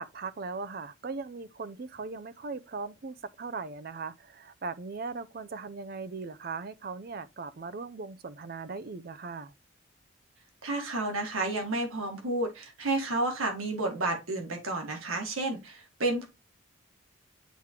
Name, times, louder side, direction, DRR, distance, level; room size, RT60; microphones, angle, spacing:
voice 1, 0.0-9.5, right 4 dB, 45° right, 0.5 m, -39 dB
voice 2, 10.6-16.3, right 2 dB, 90° right, 1.7 m, -31 dB
9.2 x 3.7 x 2.9 m
head